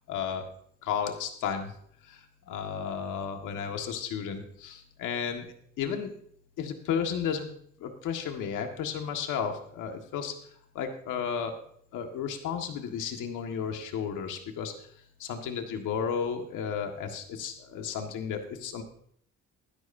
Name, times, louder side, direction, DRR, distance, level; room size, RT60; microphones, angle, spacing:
voice 1, 0.1-0.4 0.8-1.7 2.1-2.2 2.5-5.5 5.8-6.1 6.6-7.5 7.8-10.3 10.7-11.5 11.9-14.7 15.2-18.8, left 7 dB, 90° left, 4 dB, 1.8 m, -33 dB
15.5 x 12.5 x 2.7 m, 0.64 s
cardioid pair, 90°, 30 cm